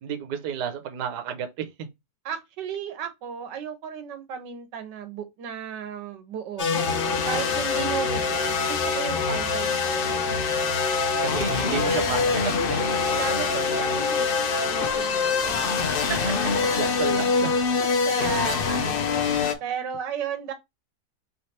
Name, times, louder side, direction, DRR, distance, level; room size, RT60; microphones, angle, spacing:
voice 1, 0.0-1.7 7.3-7.7 9.3-9.5 11.2-12.9 16.8-18.3, right 8 dB, 70° right, 1.3 m, -32 dB
voice 2, 2.2-6.7 7.3-10.2 13.1-14.3 14.6-16.5 17.9-20.5, right 8 dB, 85° right, 1.5 m, -34 dB
sound 1, 6.6-19.5, left 5 dB, 60° left, 0.6 m, -24 dB
3.4 x 3.3 x 4.1 m
omnidirectional pair, 1.9 m